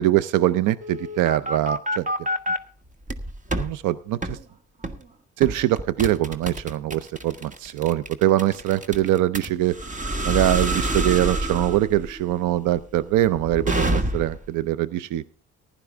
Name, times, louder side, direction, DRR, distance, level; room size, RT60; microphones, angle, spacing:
voice 1, 0.0-2.1 3.6-4.4 5.4-9.8 10.3-15.2, right 14 dB, 85° right, 16 dB, 0.6 m, -23 dB
sound 1, 0.8-2.6 3.1-3.7 4.2-4.4 4.8-5.0 5.4-14.5, right 1 dB, 25° right, 1.4 m, -27 dB
15.0 x 11.0 x 3.4 m, 0.41 s
cardioid pair, 90°, 30 cm